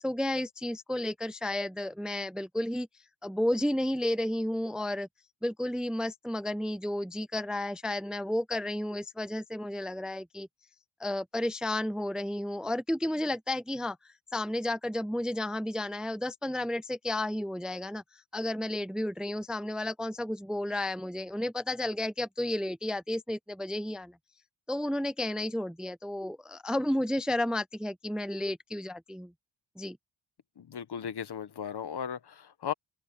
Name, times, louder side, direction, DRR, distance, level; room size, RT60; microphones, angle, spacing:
voice 1, 0.0-2.9 3.2-5.1 5.4-10.5 11.0-24.2 24.7-29.3 29.8-30.0, left 1 dB, ahead, 0.5 m, -32 dB
voice 2, 30.6-32.7, left 8 dB, 60° left, 1.4 m, -36 dB
open air
wide cardioid pair, 110°, 45 cm